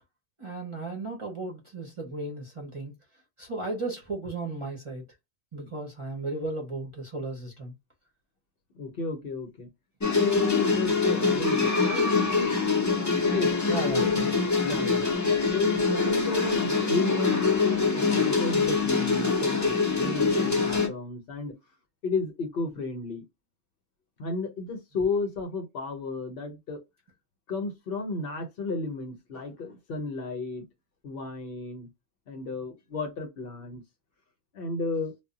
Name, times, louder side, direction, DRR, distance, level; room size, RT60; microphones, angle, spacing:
voice 1, 0.4-2.9 3.4-5.0 5.5-7.7 13.7-14.3, right 2 dB, 35° right, 0.6 m, -35 dB
voice 2, 8.7-9.7 10.1-12.1 13.2-13.5 13.9-14.3 14.6-15.0 15.5-21.5 22.0-23.2 24.2-26.8 27.5-30.6 31.0-31.9 32.3-33.8 34.5-35.1, left 4 dB, 60° left, 0.8 m, -32 dB
sound 1, 10.0-20.9, left 4 dB, 25° left, 0.4 m, -24 dB
2.1 x 2.1 x 3.7 m
omnidirectional pair, 1.1 m